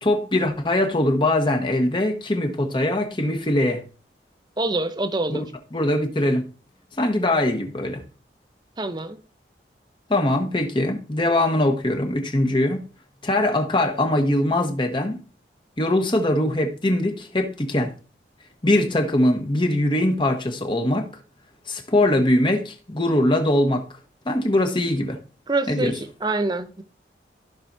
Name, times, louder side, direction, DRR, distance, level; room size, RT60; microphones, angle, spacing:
voice 1, 0.0-3.8 5.3-5.4 5.7-6.4 7.0-8.0 10.1-12.9 13.2-15.2 15.8-17.9 18.6-21.1 21.7-23.8 24.2-25.2 25.7-25.9, left 1 dB, 30° left, 1.1 m, -22 dB
voice 2, 4.6-5.4 8.8-9.2 25.5-25.9 26.2-26.8, right 2 dB, 25° right, 0.7 m, -25 dB
14.5 x 5.8 x 2.7 m
head